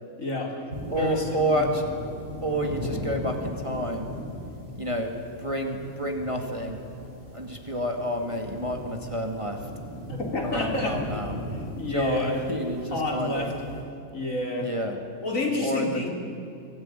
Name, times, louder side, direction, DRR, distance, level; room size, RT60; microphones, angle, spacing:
voice 1, 0.2-0.6 0.9-1.7 10.1-11.0 11.5-12.4 12.9-13.5 14.1-14.7 15.2-16.1, left 2 dB, 65° left, 0 dB, 4.1 m, -29 dB
sound 1, 0.7-13.8, left 1 dB, 35° right, 8.4 m, -38 dB
voice 2, 0.9-1.8 2.4-4.1 4.8-6.8 7.3-9.6 10.4-11.4 11.9-13.4 14.6-15.0 15.6-16.0, equal, 20° right, 3 dB, 2.2 m, -29 dB
24.0 x 17.5 x 10.0 m, 2.7 s
omnidirectional pair, 1.5 m